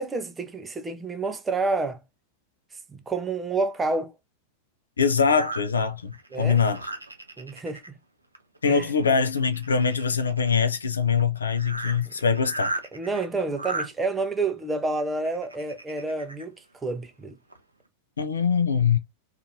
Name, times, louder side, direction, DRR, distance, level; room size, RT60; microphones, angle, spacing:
voice 1, 0.0-2.0 2.9-4.1 6.3-6.6 7.4-7.8 8.7-8.9 12.1-12.2 12.9-16.5 16.8-17.4, right 3 dB, 15° right, 0.5 m, -29 dB
voice 2, 5.0-6.8 8.6-12.7 18.2-19.0, left 6 dB, 70° left, 0.4 m, -23 dB
sound 1, 5.3-7.9 8.3-8.7 9.0-10.6 11.2-11.3 11.5-13.9 14.9-16.4 17.0-17.1 17.5-17.6, right 2 dB, 80° right, 0.5 m, -36 dB
2.5 x 2.4 x 2.7 m
figure-of-eight pair, 90°, 0 cm